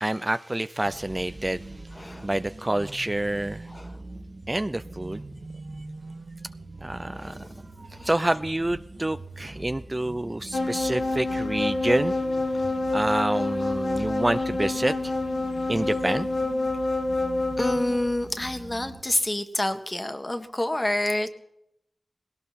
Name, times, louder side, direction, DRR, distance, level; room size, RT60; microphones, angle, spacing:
voice 1, 0.0-1.6 2.2-3.7 4.5-5.2 6.8-7.4 8.0-12.1 12.9-15.1 15.7-16.3, right 1 dB, 25° right, 0.5 m, -27 dB
sound 1, 0.8-19.0, right 2 dB, 60° right, 1.9 m, -42 dB
voice 2, 1.9-2.3 3.7-4.0 7.1-7.5 8.0-8.1 12.5-12.6 14.0-14.1 17.6-21.3, left 1 dB, 30° left, 1.7 m, -28 dB
sound 2, 10.5-18.0, left 2 dB, 85° left, 2.3 m, -27 dB
18.5 x 17.5 x 4.3 m
cardioid pair, 40°, 0 cm